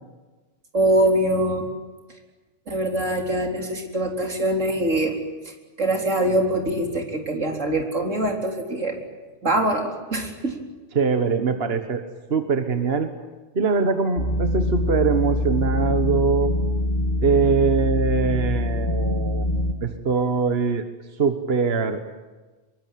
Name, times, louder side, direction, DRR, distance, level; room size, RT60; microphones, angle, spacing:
voice 1, 0.7-1.7 2.7-5.2 5.5-9.0 9.4-10.6, right 1 dB, 85° right, 3 dB, 4.3 m, -23 dB
voice 2, 10.9-12.0 12.3-13.1 13.5-16.5 17.2-19.4 19.8-20.8 21.2-22.0, right 5 dB, 55° right, 8 dB, 1.6 m, -22 dB
sound 1, 14.2-19.7, left 1 dB, 45° left, 2.4 m, -24 dB
25.5 x 23.5 x 9.3 m, 1.2 s
omnidirectional pair, 1.3 m